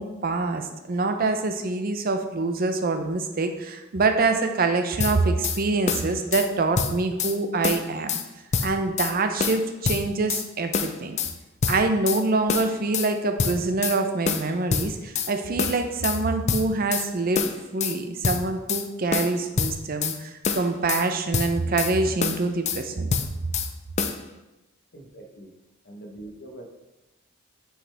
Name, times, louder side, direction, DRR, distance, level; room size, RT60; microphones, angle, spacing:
voice 1, 0.0-8.2 8.6-11.2 11.7-23.1, right 3 dB, 45° right, 6 dB, 0.6 m, -25 dB
sound 1, 5.0-5.6 5.9-6.5 6.8-7.4 7.6-8.3 8.5-9.1 9.4-10.5 10.7-11.3 11.6-12.2 12.5-13.1 13.4-14.0 14.3-15.3 15.6-16.2 16.5-17.1 17.4-18.0 18.2-18.9 19.1-20.2 20.4-21.1 21.3-21.9 22.2-22.8 23.1-23.7 24.0-24.2, left 5 dB, 35° left, 0.4 m, -26 dB
voice 2, 24.9-25.5 25.8-26.8, right 1 dB, 55° left, 1 dB, 1.0 m, -43 dB
6.2 x 5.0 x 3.3 m, 1.0 s
head